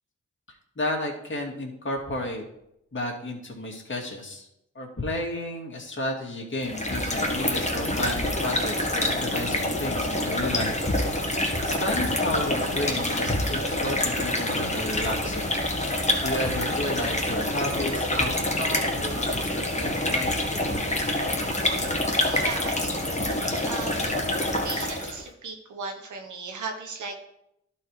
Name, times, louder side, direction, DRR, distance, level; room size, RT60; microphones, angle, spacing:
voice 1, 0.8-2.4 2.9-4.5 4.7-15.5 15.9-20.9, left 1 dB, 40° left, -1 dB, 2.4 m, -33 dB
sound 1, 6.6-25.2, left 1 dB, 25° left, 1.9 m, -26 dB
voice 2, 22.3-24.2 24.6-27.2, right 4 dB, 90° right, 3 dB, 1.1 m, -37 dB
11.5 x 4.4 x 4.8 m, 0.80 s
cardioid pair, 50°, 29 cm